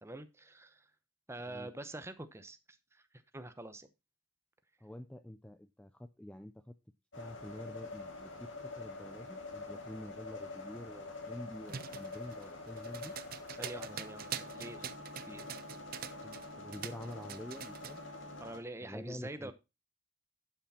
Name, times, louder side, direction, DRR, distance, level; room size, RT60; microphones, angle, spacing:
voice 1, 0.0-0.9 1.3-2.6 2.9-3.0 3.3-3.9 13.6-15.0 15.2-15.5 18.4-19.5, right 1 dB, 15° right, 0.8 m, -45 dB
voice 2, 4.8-6.7 7.2-13.1 16.2-18.0 18.8-19.5, left 1 dB, 5° left, 0.4 m, -47 dB
sound 1, 7.1-18.6, left 3 dB, 70° left, 2.3 m, -46 dB
sound 2, 11.7-16.5 16.7-18.0, right 8 dB, 50° right, 0.7 m, -44 dB
11.5 x 5.9 x 4.2 m
head